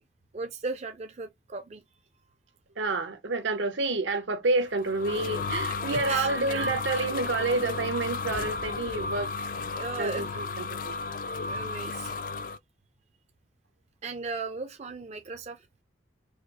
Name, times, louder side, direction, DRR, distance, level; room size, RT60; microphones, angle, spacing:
voice 1, 0.3-1.8 6.1-6.3 7.1-7.2 9.7-10.4 11.5-12.1 14.0-15.6, right 4 dB, 35° right, 0.4 m, -36 dB
voice 2, 2.8-9.3 10.0-11.0, right 3 dB, 80° right, 0.8 m, -29 dB
sound 1, 4.6-12.6, left 4 dB, 45° left, 0.3 m, -33 dB
4.8 x 2.0 x 2.8 m
head